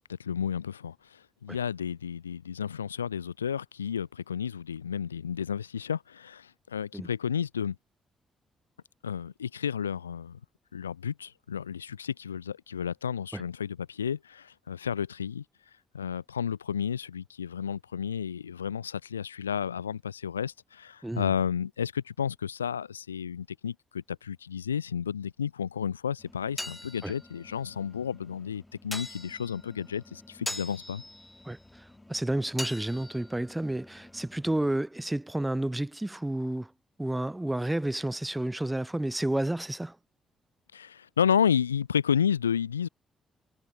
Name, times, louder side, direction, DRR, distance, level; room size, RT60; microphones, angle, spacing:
voice 1, 0.1-7.8 9.0-10.4 10.7-15.4 15.9-31.0 40.7-42.9, left 8 dB, 85° left, 0.4 m, -32 dB
sound 1, 26.2-34.8, left 1 dB, 15° left, 6.6 m, -43 dB
voice 2, 31.4-36.7 37.0-40.0, right 1 dB, 10° right, 0.8 m, -31 dB
figure-of-eight pair, 40°, 0 cm